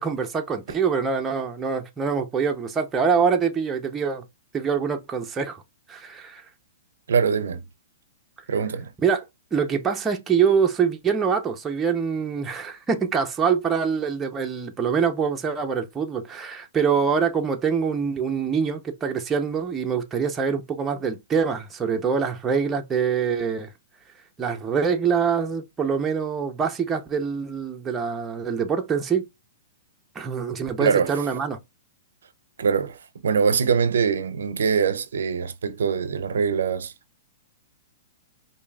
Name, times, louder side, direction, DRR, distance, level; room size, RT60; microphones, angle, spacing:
voice 1, 0.0-4.2 4.5-5.6 5.9-6.4 9.0-23.7 24.4-29.3 30.2-31.6, right 6 dB, 15° right, 0.6 m, -24 dB
voice 2, 7.1-7.6 8.5-8.9 30.8-31.1 32.6-33.0 33.2-36.9, right 6 dB, 85° right, 0.5 m, -23 dB
4.9 x 2.6 x 2.3 m
hypercardioid pair, 140°, 0 cm